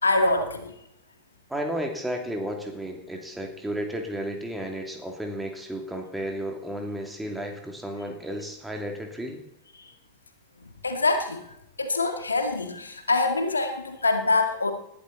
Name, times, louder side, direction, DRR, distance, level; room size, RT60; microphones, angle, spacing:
voice 1, 0.0-0.7 9.8-9.9 10.8-11.5 11.8-14.7, left 3 dB, 75° left, 7 dB, 1.8 m, -25 dB
voice 2, 1.5-9.4, equal, 5° right, 2 dB, 2.8 m, -33 dB
19.5 x 12.0 x 4.1 m, 0.79 s
figure-of-eight pair, 90°, 0 cm